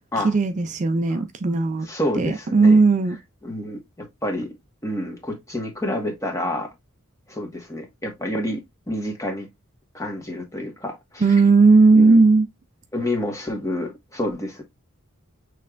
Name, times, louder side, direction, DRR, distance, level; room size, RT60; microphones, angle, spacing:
voice 1, 0.2-1.9 2.2-3.2 11.2-12.5, right 3 dB, 35° right, 0.4 m, -16 dB
voice 2, 1.8-2.8 3.4-4.6 4.8-6.7 7.3-9.5 9.9-11.3 11.9-12.2 12.9-14.6, left 1 dB, 15° left, 1.5 m, -29 dB
6.4 x 3.2 x 2.4 m
head